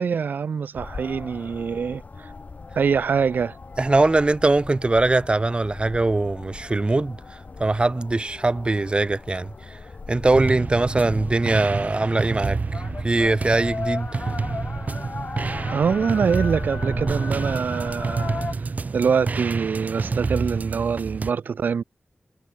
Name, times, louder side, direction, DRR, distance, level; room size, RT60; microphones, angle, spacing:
voice 1, 0.0-2.3 2.8-3.6 15.7-21.8, right 6 dB, 90° right, 0.4 m, -24 dB
sound 1, 0.7-18.5, left 4 dB, 60° left, 5.1 m, -37 dB
voice 2, 3.8-7.2 7.6-9.8 10.1-12.6 13.0-14.2, right 2 dB, 35° right, 1.5 m, -21 dB
sound 2, 10.3-21.3, right 4 dB, 60° right, 2.6 m, -28 dB
cardioid pair, 60°, 3 cm